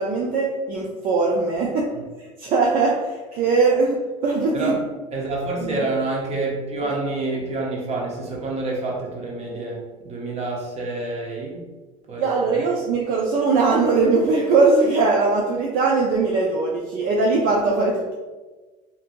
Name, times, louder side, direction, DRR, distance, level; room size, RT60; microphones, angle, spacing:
voice 1, 0.0-1.9 2.2-4.0 4.2-4.7 5.6-5.8 12.2-18.1, right 3 dB, 55° right, -2 dB, 0.5 m, -20 dB
voice 2, 5.1-11.6 12.1-12.7, right 2 dB, 35° right, -2 dB, 0.9 m, -28 dB
2.7 x 2.6 x 2.5 m, 1.3 s
supercardioid pair, 80°, 18 cm